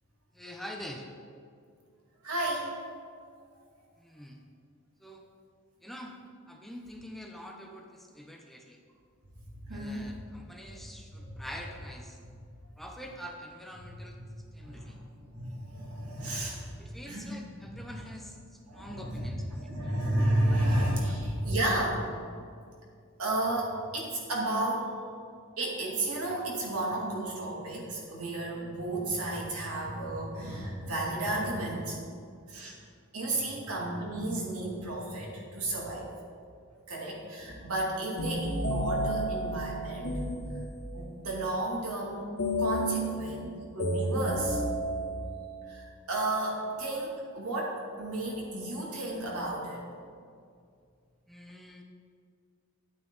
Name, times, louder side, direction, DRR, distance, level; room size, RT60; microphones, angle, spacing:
voice 1, 0.3-1.1 4.0-4.4 5.0-5.2 5.8-6.2 6.5-8.8 9.7-12.2 12.8-14.2 14.5-15.0 16.2-16.5 16.8-19.7 20.5-20.6 21.0-21.1 51.3-51.8, equal, ahead, 1 dB, 0.6 m, -45 dB
voice 2, 2.2-2.7 9.4-10.1 10.6-10.8 11.1-11.3 13.8-13.9 14.6-17.4 17.7-17.8 18.7-19.3 19.6-22.1 23.2-24.9 25.6-32.0 32.5-32.7 33.1-36.1 36.9-40.3 40.9-42.3 42.6-44.6 45.6-49.8, right 1 dB, 85° right, -3 dB, 2.4 m, -32 dB
sound 1, 38.2-41.2 42.4-45.7, equal, 80° left, 1.6 m, -32 dB
10.5 x 8.7 x 4.0 m, 2.3 s
head